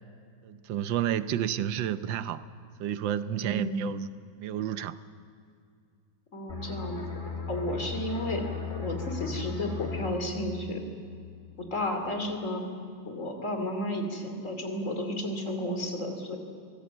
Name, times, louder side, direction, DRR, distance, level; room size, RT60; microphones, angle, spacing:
voice 1, 0.4-2.4 2.8-4.1 4.4-5.0, right 10 dB, 90° right, 13 dB, 1.5 m, -30 dB
voice 2, 3.4-3.9 6.3-7.0 7.5-8.4 8.8-10.8 11.7-12.6 13.1-16.4, left 1 dB, 40° left, 4 dB, 3.0 m, -32 dB
sound 1, 6.5-11.9 12.2-12.4, left 5 dB, 25° left, 2.0 m, -37 dB
24.5 x 18.0 x 7.9 m, 2.3 s
omnidirectional pair, 2.0 m